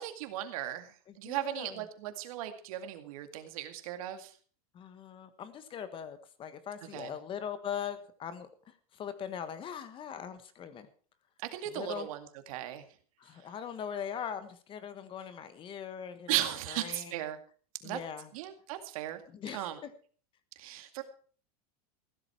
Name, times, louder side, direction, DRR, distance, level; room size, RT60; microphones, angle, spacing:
voice 1, 0.0-0.9 1.2-4.3 6.9-7.1 11.5-12.8 16.3-17.4 17.8-18.0 18.3-19.2 19.5-19.8 20.6-21.0, right 13 dB, 65° right, 8 dB, 2.2 m, -36 dB
voice 2, 1.1-1.8 4.7-10.9 11.7-12.1 13.2-16.4 16.7-17.2 17.8-18.3 19.3-19.9, left 8 dB, 25° left, 12 dB, 1.4 m, -41 dB
15.0 x 13.0 x 4.6 m, 0.43 s
supercardioid pair, 145°, 19 cm